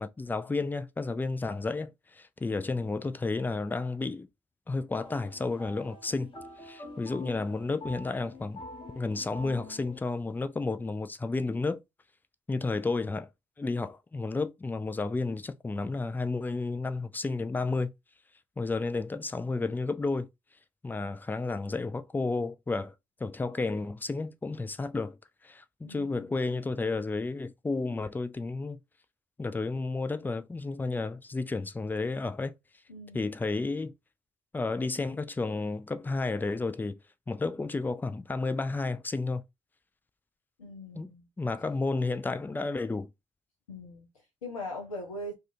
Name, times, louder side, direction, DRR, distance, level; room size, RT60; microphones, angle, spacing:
voice 1, 0.0-4.3 4.7-6.3 6.6-8.6 9.0-11.8 12.5-13.3 13.6-17.9 18.6-20.3 20.8-22.9 23.2-25.2 25.4-28.8 29.4-32.5 33.1-33.9 34.5-37.0 37.3-39.4 41.0-41.1 41.4-43.1, left 3 dB, 10° left, 0.3 m, -32 dB
sound 1, 5.0-10.0, left 2 dB, 30° left, 0.9 m, -46 dB
voice 2, 25.8-26.3 32.9-33.3 40.6-41.3 43.7-45.3, left 1 dB, 80° left, 0.5 m, -41 dB
2.4 x 2.3 x 2.5 m
figure-of-eight pair, 40°, 18 cm